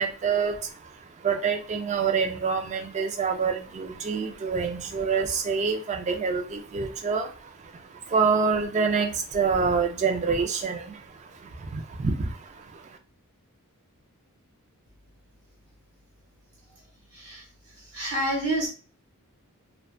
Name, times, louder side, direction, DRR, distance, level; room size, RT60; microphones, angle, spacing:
voice 1, 0.0-13.0, right 5 dB, 30° right, 4 dB, 0.3 m, -27 dB
voice 2, 17.1-17.4 17.9-18.7, right 1 dB, 65° right, -3 dB, 0.9 m, -28 dB
2.6 x 2.1 x 2.4 m, 0.39 s
head